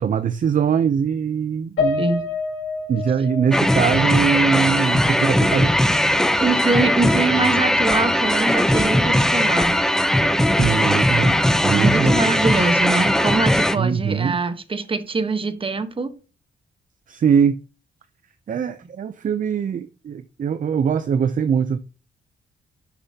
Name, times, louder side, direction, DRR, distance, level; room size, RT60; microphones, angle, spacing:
voice 1, 0.0-2.1 2.9-5.8 10.5-12.1 13.8-14.4 17.1-17.6 18.5-21.8, right 7 dB, 45° right, 0.5 m, -22 dB
Piano, 1.8-6.3 6.6-6.8 7.2-7.3, left 4 dB, 75° left, 3.7 m, -29 dB
voice 2, 2.0-2.3 6.4-9.7 11.7-16.1, right 3 dB, 30° right, 1.1 m, -23 dB
sound 1, 3.5-13.8, left 1 dB, 5° left, 0.6 m, -19 dB
11.0 x 6.8 x 2.8 m
cardioid pair, 115°, 19 cm